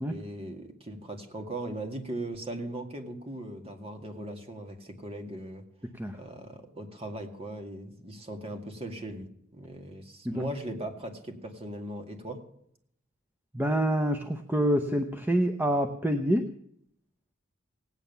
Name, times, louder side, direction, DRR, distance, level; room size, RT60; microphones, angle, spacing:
voice 1, 0.0-5.6 6.1-9.3 9.5-12.4, right 1 dB, 30° right, 5 dB, 2.2 m, -39 dB
voice 2, 13.5-16.5, equal, 10° right, 7 dB, 0.8 m, -26 dB
18.0 x 9.2 x 6.9 m, 0.71 s
head